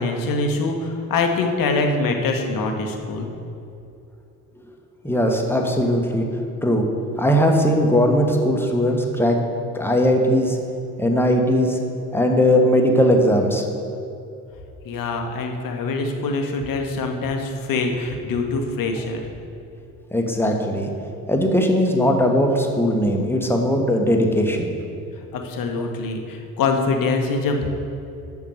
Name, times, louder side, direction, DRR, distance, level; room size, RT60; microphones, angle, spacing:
voice 1, 0.0-3.3 14.8-19.2 25.3-27.7, left 3 dB, 45° left, 4 dB, 1.2 m, -24 dB
voice 2, 5.0-6.8 7.2-9.4 9.7-10.6 11.0-11.8 12.1-13.6 20.1-20.9 21.3-24.7, equal, 5° left, 2 dB, 1.3 m, -19 dB
7.0 x 6.6 x 6.5 m, 2.7 s
figure-of-eight pair, 45°, 45 cm